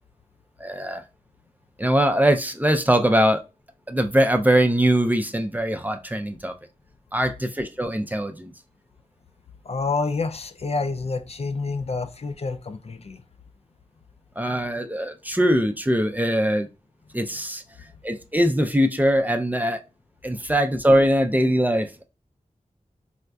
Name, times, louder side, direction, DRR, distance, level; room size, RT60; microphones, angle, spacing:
voice 1, 0.6-1.0 1.8-3.4 3.9-6.5 7.1-8.5 14.4-16.7 17.1-17.6 18.0-19.8 20.2-22.0, equal, 10° right, 0.4 m, -21 dB
voice 2, 9.6-13.2, left 3 dB, 50° left, 0.4 m, -28 dB
4.1 x 2.4 x 2.3 m
wide cardioid pair, 55°, 14 cm